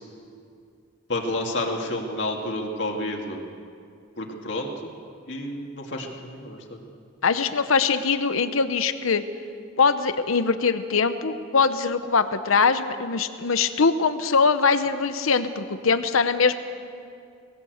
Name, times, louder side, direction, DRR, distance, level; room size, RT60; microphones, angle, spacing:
voice 1, 1.1-3.4 4.2-4.7 5.3-6.8, left 1 dB, 60° left, 1 dB, 2.2 m, -30 dB
voice 2, 7.2-9.2 9.8-16.5, left 5 dB, 85° left, 11 dB, 0.8 m, -22 dB
19.5 x 16.5 x 8.0 m, 2.4 s
head